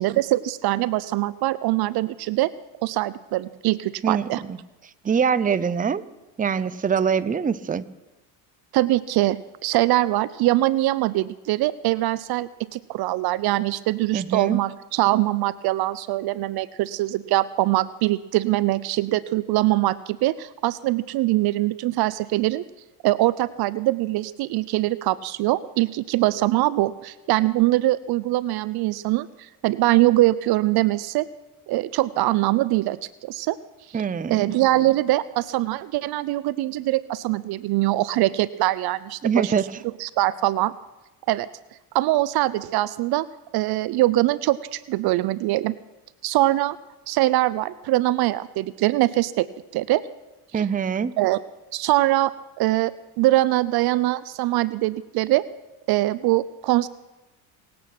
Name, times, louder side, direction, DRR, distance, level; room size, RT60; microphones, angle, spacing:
voice 1, 0.0-2.5 2.8-4.4 8.7-22.6 23.0-31.3 31.7-33.6 34.3-39.5 40.0-40.7 41.3-41.5 41.9-43.3 43.5-45.7 46.2-46.8 47.1-49.5 49.7-50.0 50.5-50.6 51.2-51.4 51.7-52.9 53.2-55.4 55.9-56.9, right 17 dB, 60° right, 17 dB, 0.6 m, -22 dB
voice 2, 4.0-4.6 5.0-6.0 6.4-7.8 14.1-14.6 33.9-34.5 39.2-39.7 50.5-51.2, right 7 dB, 20° right, 14 dB, 0.7 m, -24 dB
26.0 x 8.6 x 6.0 m, 1.0 s
supercardioid pair, 80°, 43 cm